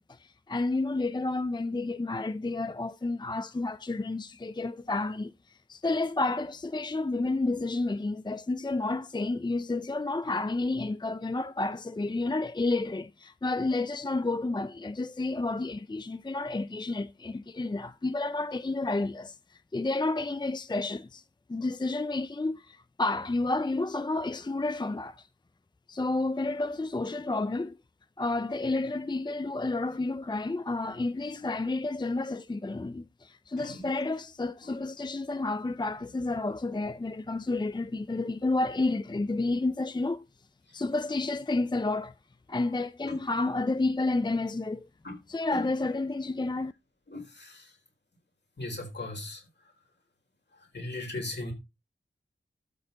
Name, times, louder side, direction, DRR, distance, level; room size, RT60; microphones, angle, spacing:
voice 1, 0.0-19.4 19.7-21.2 21.5-25.3 25.9-27.7 28.2-40.2 40.7-42.1 42.5-44.9 45.3-46.7, left 2 dB, 20° left, 0.5 m, -30 dB
voice 2, 47.1-47.6 48.6-49.4 50.7-51.5, left 2 dB, 60° left, 4.3 m, -37 dB
12.5 x 6.6 x 4.1 m
wide cardioid pair, 65°, 20 cm